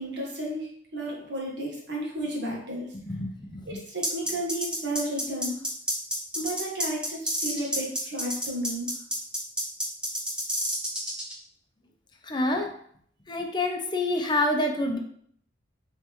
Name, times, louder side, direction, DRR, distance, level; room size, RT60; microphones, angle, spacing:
voice 1, 0.0-3.0 3.7-5.6 6.3-8.9, right 1 dB, 65° right, -2 dB, 1.4 m, -33 dB
voice 2, 3.1-3.8 12.3-12.7 13.3-15.0, left 1 dB, 25° left, 3 dB, 0.6 m, -27 dB
sound 1, 4.0-11.3, equal, 5° right, 0.9 m, -29 dB
5.1 x 3.2 x 3.0 m, 0.63 s
head